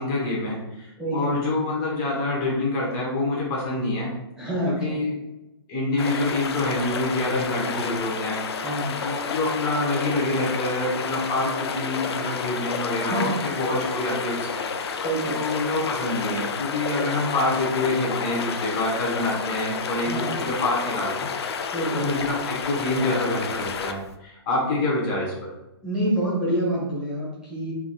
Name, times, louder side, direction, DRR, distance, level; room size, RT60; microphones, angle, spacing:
voice 1, 0.0-4.1 4.8-5.2 5.7-8.4 9.0-14.6 15.3-21.3 21.9-25.5, left 2 dB, 25° left, -4 dB, 1.0 m, -26 dB
voice 2, 1.0-1.3 4.4-5.0 8.6-9.0 13.1-13.4 15.0-15.4 20.1-20.3 21.7-22.0 25.8-27.7, right 1 dB, 5° right, -9 dB, 1.1 m, -27 dB
sound 1, 6.0-24.1, left 6 dB, 75° left, 0.5 m, -30 dB
3.9 x 3.5 x 2.3 m, 0.95 s
hypercardioid pair, 150°, 14 cm